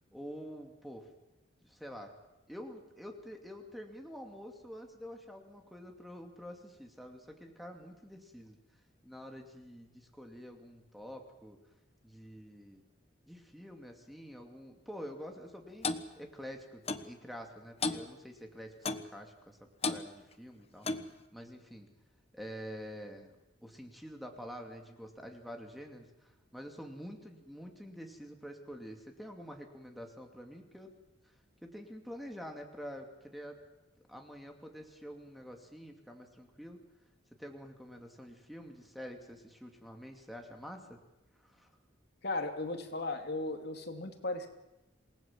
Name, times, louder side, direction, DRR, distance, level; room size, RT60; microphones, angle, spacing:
voice 1, 0.1-1.1 1.6-2.1 2.5-8.6 9.0-11.6 12.0-12.8 13.2-19.6 19.8-21.9 22.3-23.3 23.6-30.9 31.6-33.6 34.1-36.8 37.4-41.0 41.4-41.7, equal, ahead, 3 dB, 2.6 m, -47 dB
Clock, 15.8-16.1 16.9-17.1 17.8-18.1 18.9-19.1 19.8-20.0 20.8-21.1, left 3 dB, 30° left, 1.2 m, -33 dB
voice 2, 42.2-44.5, left 2 dB, 55° left, 5 dB, 2.7 m, -36 dB
28.0 x 19.0 x 7.5 m, 0.96 s
head